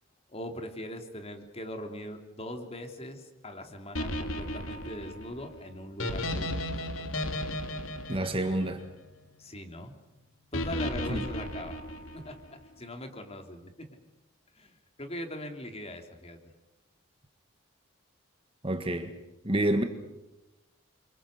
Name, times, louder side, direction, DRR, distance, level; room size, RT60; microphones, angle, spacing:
voice 1, 0.3-6.7 9.4-10.0 10.5-11.8 12.1-14.0 14.6-16.4, left 1 dB, 30° left, 5 dB, 3.4 m, -41 dB
sound 1, 4.0-9.2 10.5-12.5, left 1 dB, 75° left, 2.7 m, -34 dB
voice 2, 8.1-8.8 11.1-11.2 18.6-19.1 19.4-19.8, right 1 dB, 25° right, 7 dB, 1.8 m, -28 dB
30.0 x 26.0 x 6.7 m, 0.95 s
head